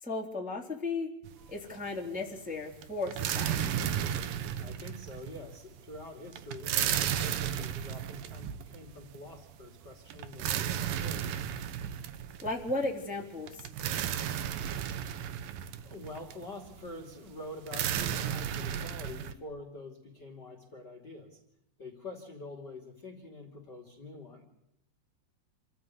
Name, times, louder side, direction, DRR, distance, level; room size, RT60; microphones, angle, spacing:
voice 1, 0.0-1.1 1.5-3.8 12.4-13.7, left 3 dB, ahead, 0 dB, 2.5 m, -35 dB
sound 1, 1.2-1.9 2.2-19.3, right 10 dB, 70° right, 2.6 m, -34 dB
voice 2, 4.6-11.3 15.2-15.3 15.8-21.4 21.8-24.4, left 2 dB, 30° left, 4 dB, 2.6 m, -46 dB
27.0 x 15.0 x 9.6 m, 0.78 s
omnidirectional pair, 4.9 m